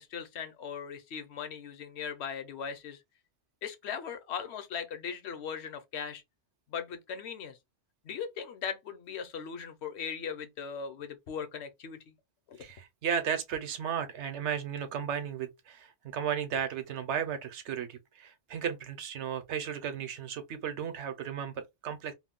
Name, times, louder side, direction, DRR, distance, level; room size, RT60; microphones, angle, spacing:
voice 1, 0.0-3.0 3.6-6.2 6.7-7.6 8.0-12.1 12.5-12.6, left 7 dB, 65° left, 0.9 m, -39 dB
voice 2, 12.6-22.1, right 8 dB, 70° right, 0.9 m, -34 dB
2.5 x 2.1 x 3.5 m
omnidirectional pair, 1.3 m